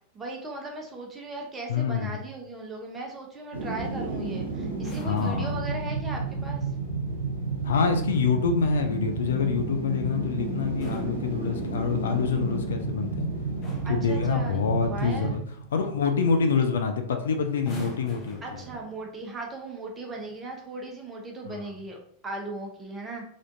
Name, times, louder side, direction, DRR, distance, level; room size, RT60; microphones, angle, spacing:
voice 1, 0.1-6.7 13.8-14.6 14.9-15.4 18.4-22.0 22.2-23.2, right 2 dB, 15° right, 0 dB, 0.7 m, -37 dB
voice 2, 1.7-2.2 5.0-5.6 7.6-13.3 13.9-15.4 15.7-18.6 21.5-21.6, left 5 dB, 65° left, 5 dB, 0.4 m, -26 dB
sound 1, 3.5-16.6 16.9-17.0, right 4 dB, 80° right, 0.7 m, -31 dB
sound 2, 4.7-5.7 7.8-8.4 10.6-12.0 13.0-13.2 13.6-14.1 15.8-16.0 16.3-16.6 17.5-19.2 20.1-20.4, right 2 dB, 30° left, 0.7 m, -44 dB
3.4 x 2.5 x 2.5 m, 0.63 s
figure-of-eight pair, 90°, 0 cm